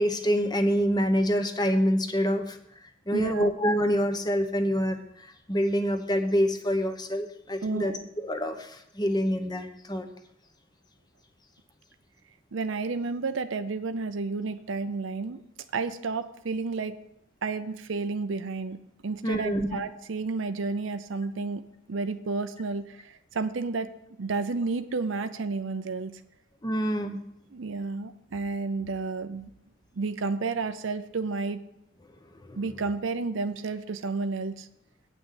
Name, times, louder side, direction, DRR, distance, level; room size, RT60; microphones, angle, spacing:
voice 1, 0.0-2.6 3.1-10.1 19.2-19.7 26.6-27.2 32.4-32.6, equal, 20° left, 6 dB, 0.9 m, -26 dB
voice 2, 3.1-3.5 7.6-8.1 12.5-15.4 15.7-16.9 17.4-18.8 19.0-21.6 21.9-23.9 24.2-26.2 27.5-29.5 30.0-31.6 32.6-34.7, right 4 dB, 65° right, 10 dB, 0.6 m, -31 dB
9.0 x 6.1 x 8.2 m, 0.78 s
head